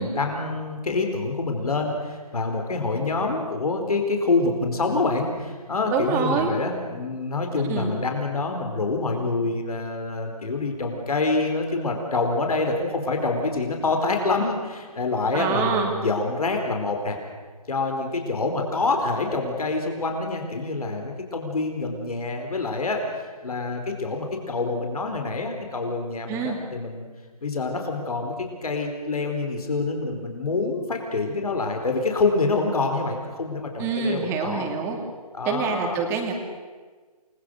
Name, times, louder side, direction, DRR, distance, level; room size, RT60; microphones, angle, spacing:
voice 1, 0.0-17.2 17.7-27.0 27.4-34.7 35.3-36.0, left 3 dB, 70° left, 3 dB, 4.4 m, -26 dB
voice 2, 5.9-6.5 7.6-7.9 15.3-15.9 26.3-26.6 33.8-35.0 35.5-36.3, right 5 dB, 10° right, 3 dB, 2.3 m, -26 dB
28.5 x 21.0 x 6.4 m, 1.4 s
figure-of-eight pair, 160°, 20 cm